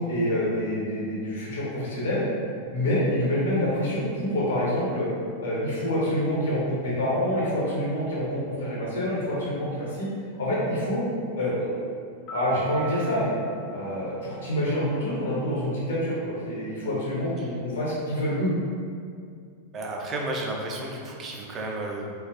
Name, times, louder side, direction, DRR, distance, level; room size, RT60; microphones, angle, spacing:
voice 1, 0.0-2.2 2.7-5.1 5.4-10.1 10.4-11.0 11.4-11.7 12.3-13.3 13.7-18.5, equal, 65° left, -7 dB, 0.8 m, -27 dB
sound 1, 12.3-14.8, right 5 dB, 40° left, 0.5 m, -41 dB
voice 2, 19.7-22.1, right 2 dB, 30° right, -1 dB, 0.4 m, -32 dB
3.2 x 2.1 x 2.4 m, 2.3 s
figure-of-eight pair, 90°, 0 cm